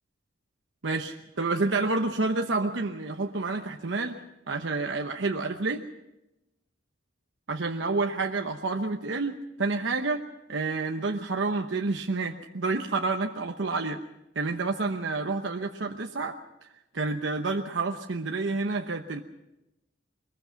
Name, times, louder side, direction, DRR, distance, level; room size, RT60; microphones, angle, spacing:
voice 1, 0.8-4.2 4.5-5.8 7.5-14.0 14.3-16.4 16.9-19.2, right 3 dB, 75° right, 3 dB, 1.0 m, -29 dB
23.0 x 21.0 x 5.8 m, 0.91 s
head